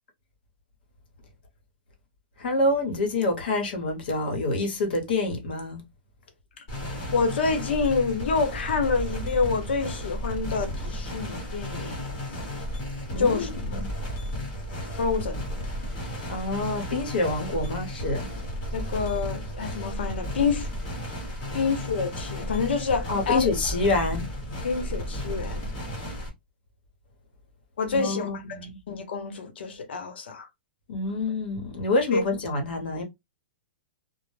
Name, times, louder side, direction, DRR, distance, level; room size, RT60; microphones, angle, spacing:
voice 1, 2.4-5.8 13.1-13.5 13.8-13.9 16.3-18.3 23.1-24.3 27.9-28.7 30.9-33.0, left 2 dB, 65° left, 0.9 m, -27 dB
sound 1, 6.7-26.3, equal, 30° left, 1.0 m, -33 dB
voice 2, 7.1-12.0 13.2-13.8 14.9-15.4 18.7-20.7 21.5-23.5 24.6-25.7 27.8-28.6 28.9-30.5 32.1-32.2, left 4 dB, 90° left, 0.8 m, -27 dB
2.1 x 2.0 x 3.1 m
supercardioid pair, 175°, 6 cm